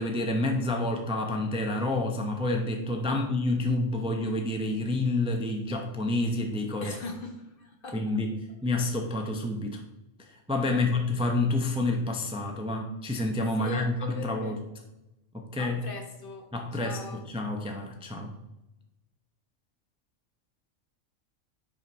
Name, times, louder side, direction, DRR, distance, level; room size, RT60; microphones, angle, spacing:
voice 1, 0.0-7.0 7.9-8.3 8.6-9.8 10.2-14.6 15.3-15.8 16.5-17.0 17.3-18.3, left 2 dB, 5° right, 2 dB, 0.6 m, -28 dB
voice 2, 6.8-8.2 10.7-11.2 13.6-14.6 15.6-17.2, left 2 dB, 45° left, 3 dB, 1.0 m, -41 dB
5.6 x 4.5 x 5.5 m, 0.93 s
omnidirectional pair, 1.4 m